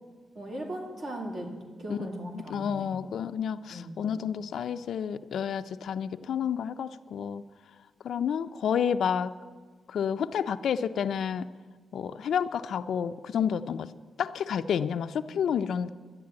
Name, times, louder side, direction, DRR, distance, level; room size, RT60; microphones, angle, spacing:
voice 1, 0.3-1.5 1.8-2.9 3.7-4.0, right 1 dB, 55° right, 1 dB, 2.6 m, -37 dB
voice 2, 2.3-7.4 8.0-9.3 9.9-11.5 11.9-13.9 14.2-15.9, left 7 dB, 80° left, 9 dB, 0.4 m, -30 dB
12.0 x 10.5 x 8.6 m, 1.5 s
wide cardioid pair, 130°, 0 cm